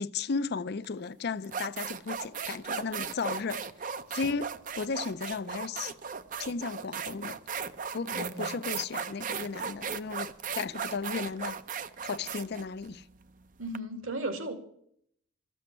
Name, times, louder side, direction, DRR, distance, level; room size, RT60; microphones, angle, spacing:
voice 1, 0.0-3.7 4.1-4.5 4.8-6.0 6.4-7.4 7.9-10.3 10.6-11.6 12.0-13.0, left 4 dB, 50° left, 0.5 m, -34 dB
sound 1, 0.8-1.0 1.4-13.8, right 6 dB, 40° right, 0.5 m, -36 dB
voice 2, 8.1-8.6 13.6-14.5, right 2 dB, 70° right, 2.1 m, -36 dB
14.0 x 7.7 x 9.7 m
head